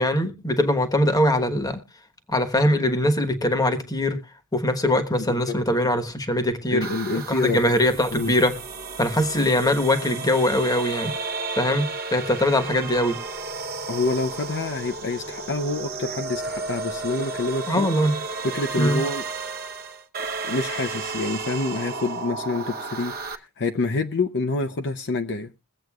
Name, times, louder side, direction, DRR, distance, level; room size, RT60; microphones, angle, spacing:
voice 1, 0.0-1.8 2.3-4.2 4.5-6.9 7.3-8.6 9.0-11.1 11.6-13.2 17.7-18.2 18.8-19.0, left 1 dB, 15° left, 1.1 m, -22 dB
voice 2, 6.7-7.6 8.1-8.3 13.9-17.9 18.4-19.2 20.5-25.5, left 3 dB, 55° left, 0.6 m, -27 dB
sound 1, 6.8-23.4, right 3 dB, 45° right, 0.9 m, -33 dB
22.5 x 7.8 x 2.3 m
head